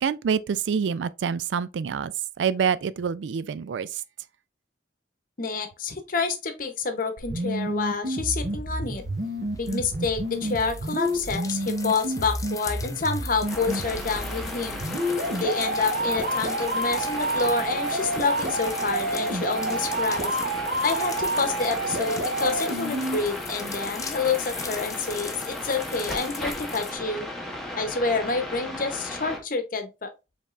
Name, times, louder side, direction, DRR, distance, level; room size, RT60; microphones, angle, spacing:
voice 1, 0.0-4.0, right 7 dB, 80° right, 0.3 m, -27 dB
voice 2, 5.4-9.0 9.6-14.8 15.4-20.3 20.8-27.3 27.7-30.1, left 4 dB, 50° left, 0.9 m, -28 dB
sound 1, 7.2-23.2, right 1 dB, 60° right, 1.0 m, -29 dB
sound 2, 8.9-26.9, left 5 dB, 20° left, 0.5 m, -40 dB
sound 3, 13.4-29.4, left 1 dB, 5° left, 1.0 m, -36 dB
5.3 x 3.5 x 2.4 m
head